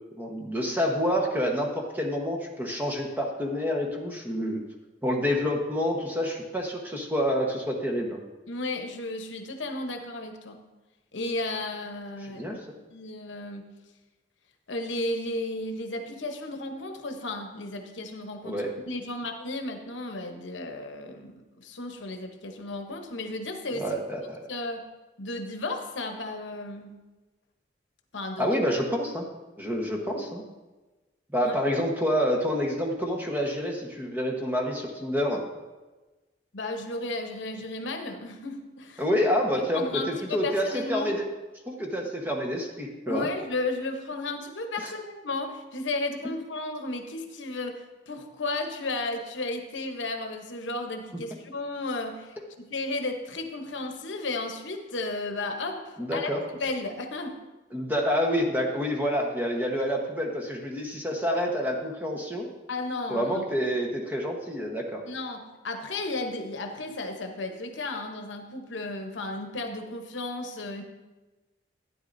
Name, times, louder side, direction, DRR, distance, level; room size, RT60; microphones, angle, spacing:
voice 1, 0.2-4.6 5.0-8.2 12.4-12.6 18.4-18.7 23.8-24.5 28.4-29.2 29.6-30.4 31.3-35.5 39.0-41.2 41.7-43.3 56.0-56.4 57.7-62.5 63.1-65.0, equal, 10° right, 0 dB, 1.1 m, -28 dB
voice 2, 8.5-10.6 11.1-12.6 12.9-13.6 14.7-23.9 24.5-24.8 25.2-27.0 28.1-28.6 31.4-31.6 36.5-39.0 39.7-41.2 43.1-57.4 62.7-63.4 65.0-70.8, left 2 dB, 75° left, 5 dB, 0.9 m, -34 dB
11.5 x 9.7 x 2.6 m, 1.2 s
head